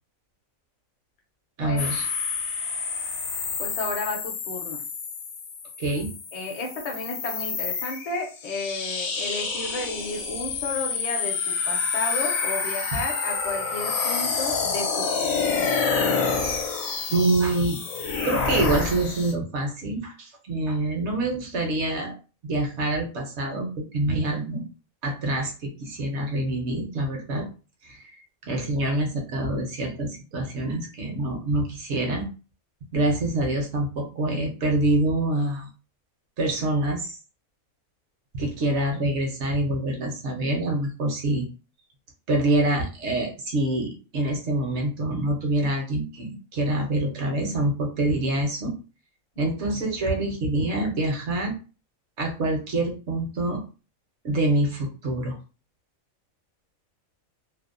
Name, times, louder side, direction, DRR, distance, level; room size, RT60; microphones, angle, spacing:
voice 1, 1.6-2.1 5.8-6.1 17.1-17.8 18.2-22.2 22.4-23.7 23.9-24.7 25.0-27.5 27.8-28.2 28.4-32.3 32.9-35.7 36.4-37.2 38.3-41.5 42.3-48.7 49.4-51.5 52.2-53.6 54.2-55.4, right 2 dB, 65° right, 2 dB, 0.9 m, -26 dB
sound 1, 1.8-19.3, left 5 dB, 80° left, 1.0 m, -28 dB
voice 2, 3.6-4.8 6.3-15.7 49.4-49.5, left 3 dB, 45° left, 1 dB, 0.5 m, -33 dB
2.6 x 2.0 x 2.4 m, 0.35 s
omnidirectional pair, 1.4 m